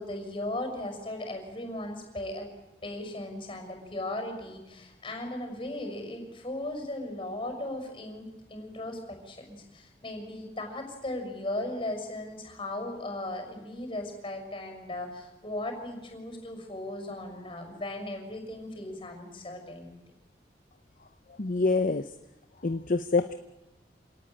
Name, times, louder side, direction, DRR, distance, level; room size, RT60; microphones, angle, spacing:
voice 1, 0.0-2.5 2.8-19.9, left 1 dB, 30° left, 5 dB, 6.1 m, -37 dB
voice 2, 21.4-22.1 22.6-23.3, left 3 dB, 50° left, 9 dB, 0.8 m, -26 dB
27.0 x 18.0 x 9.0 m, 1.0 s
head